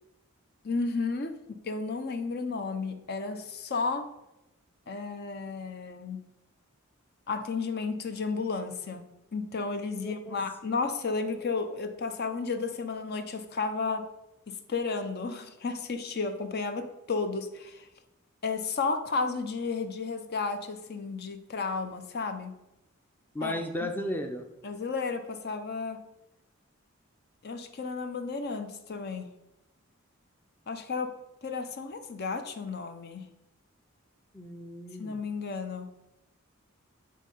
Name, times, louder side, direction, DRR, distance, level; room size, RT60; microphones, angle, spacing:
voice 1, 0.6-4.1 4.9-6.2 7.3-9.0 9.3-14.1 14.5-17.9 18.4-22.5 23.4-23.9 24.6-26.0 27.4-29.3 30.7-31.1 31.4-33.2 35.0-35.9, left 4 dB, 50° left, 8 dB, 0.6 m, -33 dB
voice 2, 10.0-10.4 23.3-24.4 34.3-35.2, left 1 dB, 10° left, 4 dB, 0.5 m, -35 dB
9.4 x 3.7 x 5.3 m, 0.93 s
head